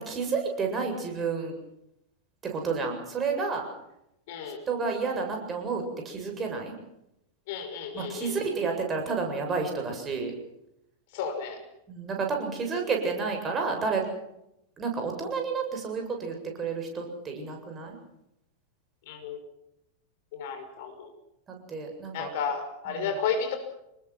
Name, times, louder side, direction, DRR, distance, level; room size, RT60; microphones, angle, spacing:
voice 1, 0.0-1.5 2.4-3.6 4.7-6.7 7.9-10.3 11.9-14.0 14.8-18.0 21.7-22.3 22.9-23.1, right 4 dB, 20° right, 3 dB, 7.7 m, -30 dB
voice 2, 4.3-4.6 7.5-8.4 11.1-11.6 19.1-19.4 20.3-21.1 22.1-23.6, left 6 dB, 50° left, 5 dB, 5.6 m, -32 dB
29.0 x 20.5 x 6.1 m, 0.82 s
figure-of-eight pair, 90°, 0 cm